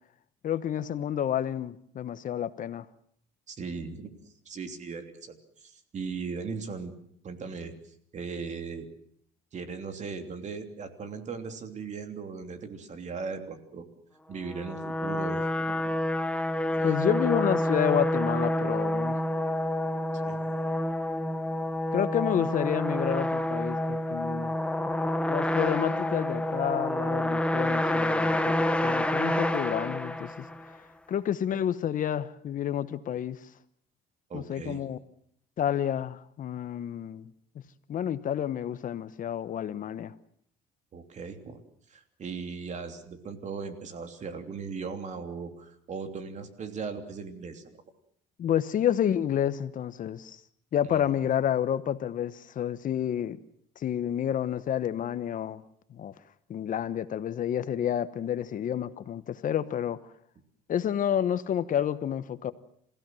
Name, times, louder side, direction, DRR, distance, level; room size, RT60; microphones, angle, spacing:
voice 1, 0.4-2.9 16.8-19.2 21.9-24.6 25.3-30.5 31.1-33.4 34.3-35.0 35.6-37.3 37.9-40.1 48.4-50.4 50.7-53.4 53.8-55.6 55.9-56.1 56.5-60.0 60.7-62.5, left 10 dB, 50° left, 13 dB, 1.1 m, -29 dB
voice 2, 3.5-6.9 7.2-7.7 8.1-8.9 9.5-13.9 14.3-15.9 16.7-17.0 20.1-20.4 34.3-34.8 40.9-41.6 41.9-47.6 50.9-51.0, right 5 dB, 45° right, 7 dB, 3.1 m, -38 dB
sound 1, 14.4-30.7, left 1 dB, 5° left, 1.4 m, -28 dB
28.0 x 16.5 x 7.7 m, 0.66 s
cardioid pair, 110°, 17 cm